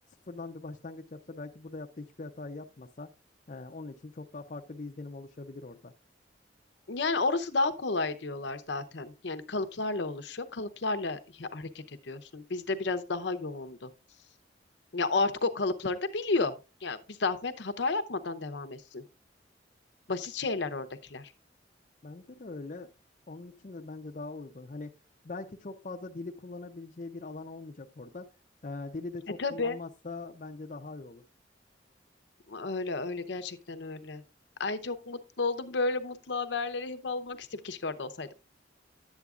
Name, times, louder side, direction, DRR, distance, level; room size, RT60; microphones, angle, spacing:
voice 1, 0.3-3.1 3.5-5.9 22.0-22.9 23.3-24.9 25.2-28.3 28.6-31.2, left 3 dB, 45° left, 0.6 m, -42 dB
voice 2, 6.9-13.9 14.9-16.5 16.8-19.0 20.1-21.3 29.4-29.8 32.5-34.2 34.6-38.4, left 3 dB, 70° left, 0.8 m, -32 dB
11.5 x 8.2 x 2.4 m
head